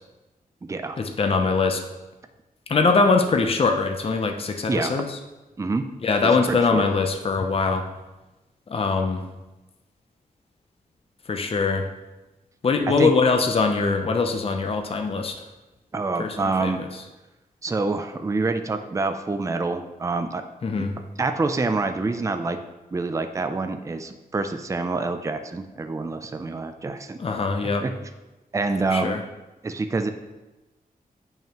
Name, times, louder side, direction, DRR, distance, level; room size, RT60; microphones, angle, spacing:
voice 1, 1.0-1.8 2.7-5.2 6.0-7.9 8.7-9.3 11.3-11.9 12.6-15.4 16.2-16.9 20.6-20.9 27.2-27.8 28.9-29.2, left 4 dB, 40° left, 5 dB, 0.6 m, -22 dB
voice 2, 6.2-6.8 12.9-13.1 15.9-16.8 17.6-20.4 20.8-20.9 21.2-22.6 22.9-27.2 27.8-27.9 28.5-29.2 29.6-30.1, right 3 dB, 20° right, 7 dB, 0.4 m, -26 dB
9.0 x 5.5 x 3.0 m, 1.1 s
wide cardioid pair, 130°, 15 cm